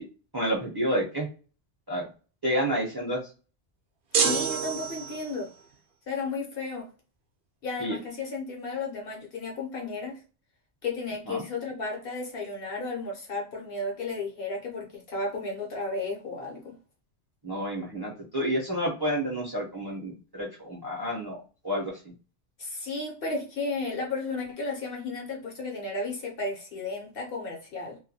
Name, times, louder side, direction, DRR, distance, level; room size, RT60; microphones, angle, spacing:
voice 1, 0.3-1.3 1.9-2.1 2.4-3.2 7.8-8.0 11.3-11.4 17.4-21.9, equal, 25° right, 0.5 m, -29 dB
voice 2, 4.1-5.5 6.1-6.9 7.6-10.2 10.8-16.8 22.6-28.0, left 3 dB, 60° left, 0.8 m, -33 dB
sound 1, 4.1-5.5, right 6 dB, 65° right, 0.7 m, -27 dB
2.3 x 2.2 x 2.6 m
omnidirectional pair, 1.2 m